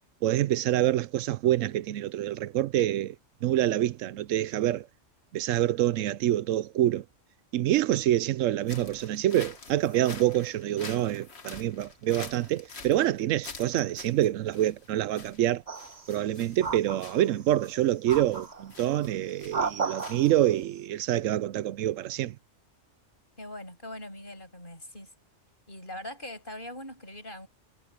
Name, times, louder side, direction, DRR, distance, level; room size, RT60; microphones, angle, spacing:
voice 1, 0.2-3.2 3.4-4.9 5.3-7.0 7.5-15.6 16.1-22.4, right 13 dB, 85° right, 1.0 m, -26 dB
sound 1, 8.6-20.6, left 4 dB, 55° left, 2.0 m, -47 dB
sound 2, 15.7-16.2 16.6-17.5 18.1-18.7 19.3-20.5, right 5 dB, 35° right, 1.0 m, -34 dB
voice 2, 23.4-25.1 25.7-27.5, left 1 dB, 40° left, 7.9 m, -41 dB
omnidirectional pair, 1.3 m